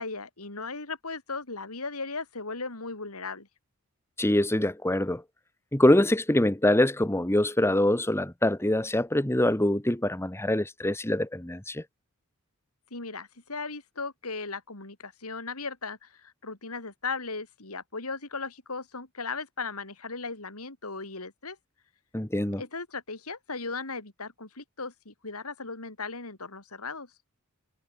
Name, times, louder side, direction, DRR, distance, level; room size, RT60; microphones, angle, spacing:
voice 1, 0.0-3.5 12.9-21.6 22.6-27.1, left 4 dB, 80° left, 3.9 m, -37 dB
voice 2, 4.2-5.2 5.7-11.8 22.1-22.6, left 1 dB, 10° left, 1.4 m, -24 dB
head